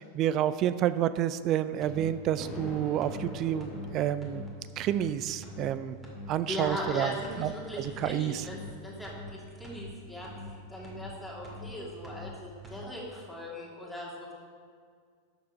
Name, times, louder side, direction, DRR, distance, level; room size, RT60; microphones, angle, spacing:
voice 1, 0.0-4.4 4.8-6.0 6.3-8.4, right 11 dB, 35° right, 14 dB, 0.4 m, -29 dB
sound 1, 1.8-2.1 2.4-2.7 3.0-3.3 3.6-3.9 4.2-4.5 4.8-5.1 5.4-5.7 6.0-6.3 6.6-6.9 7.2-7.5 7.8-8.1 8.4-8.7 9.0-9.3 9.6-9.9 10.2-10.5 10.8-11.1 11.4-11.7 12.0-12.3 12.6-12.8, left 1 dB, 15° right, 2.3 m, -43 dB
Thunder, 2.4-4.9, left 1 dB, 25° left, 1.7 m, -44 dB
voice 2, 6.5-14.3, left 1 dB, ahead, -5 dB, 2.6 m, -39 dB
12.0 x 7.1 x 4.8 m, 2.1 s
figure-of-eight pair, 90°, 0 cm